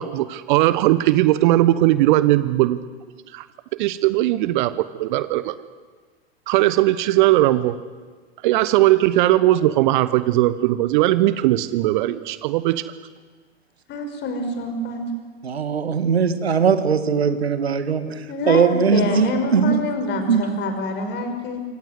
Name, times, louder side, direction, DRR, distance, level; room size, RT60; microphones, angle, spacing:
voice 1, 0.0-2.8 3.3-3.4 3.8-5.5 6.5-7.8 8.4-12.8, right 16 dB, 50° right, 15 dB, 1.1 m, -18 dB
voice 2, 13.9-15.0 18.3-21.6, left 2 dB, 35° left, 6 dB, 5.7 m, -26 dB
voice 3, 15.4-19.8 20.3-20.4, right 6 dB, 75° right, 11 dB, 2.0 m, -20 dB
27.0 x 24.5 x 8.1 m, 1.5 s
figure-of-eight pair, 90°, 32 cm